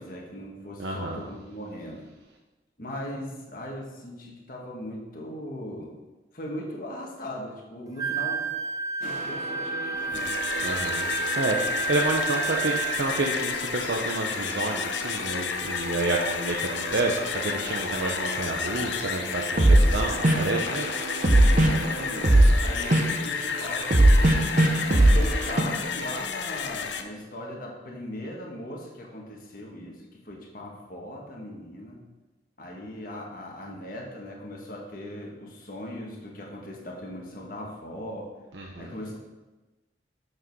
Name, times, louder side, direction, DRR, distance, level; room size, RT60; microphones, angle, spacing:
voice 1, 0.0-2.1 2.8-5.9 6.3-8.5 9.0-10.4 21.5-32.0 32.6-38.3 38.8-39.2, left 1 dB, 50° left, -1 dB, 1.4 m, -39 dB
voice 2, 0.8-1.3 10.6-11.6 11.9-20.9 38.5-38.9, right 2 dB, 75° right, 0 dB, 0.7 m, -29 dB
Wind instrument woodwind instrument, 8.0-13.4, right 4 dB, 20° right, 0.5 m, -30 dB
sound 1, 9.0-25.6, right 1 dB, 50° right, 1.1 m, -24 dB
sound 2, 10.0-27.0, left 6 dB, 85° left, 0.7 m, -32 dB
7.4 x 6.4 x 4.7 m, 1.1 s
head